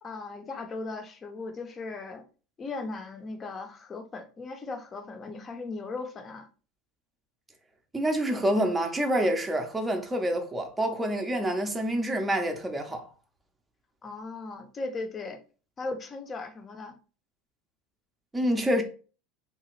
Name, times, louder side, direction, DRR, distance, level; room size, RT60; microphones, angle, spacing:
voice 1, 0.0-2.2 2.6-6.5 14.0-15.4 15.8-17.0, left 3 dB, 30° left, 0.6 m, -37 dB
voice 2, 7.9-13.1 18.3-18.8, equal, 15° right, 0.6 m, -27 dB
2.8 x 2.3 x 3.0 m
hypercardioid pair, 80°, 0 cm